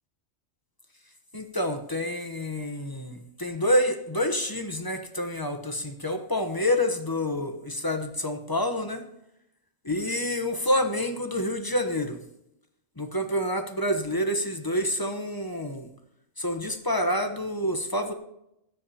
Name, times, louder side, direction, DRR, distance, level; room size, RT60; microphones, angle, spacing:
voice 1, 1.3-9.0 9.8-12.2 13.0-15.9 16.4-18.1, left 1 dB, 20° left, 6 dB, 0.9 m, -28 dB
20.0 x 10.0 x 2.9 m, 0.80 s
omnidirectional pair, 1.3 m